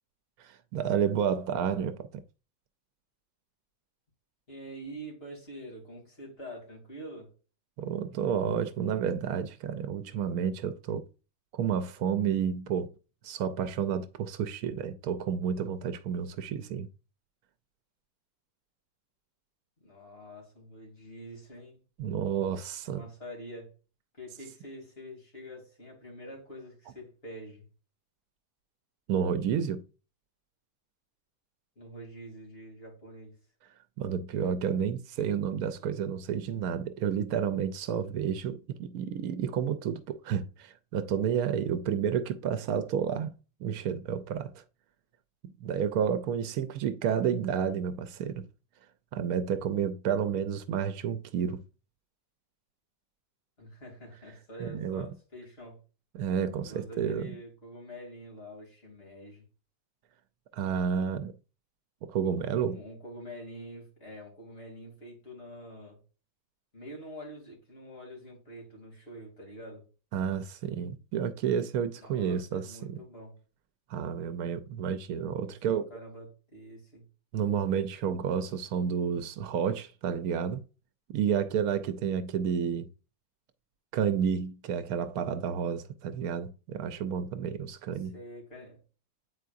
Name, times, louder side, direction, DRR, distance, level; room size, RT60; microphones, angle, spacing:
voice 1, 0.4-2.2 7.8-11.0 11.5-12.9 13.2-16.9 22.0-23.0 29.1-29.8 34.0-43.3 43.6-44.6 45.6-48.4 49.1-51.6 54.6-55.1 56.1-57.4 60.5-61.3 62.0-62.8 70.1-73.0 73.9-75.9 77.3-80.6 81.1-82.9 83.9-88.2, right 8 dB, 90° right, 1.1 m, -30 dB
voice 2, 4.5-7.3 19.8-21.8 22.8-23.7 24.1-27.6 31.7-33.4 53.6-55.8 56.6-59.5 62.6-66.0 66.7-69.9 72.0-73.4 75.4-77.0 87.9-88.8, equal, 45° left, 3.3 m, -46 dB
8.2 x 4.6 x 2.5 m
omnidirectional pair, 1.5 m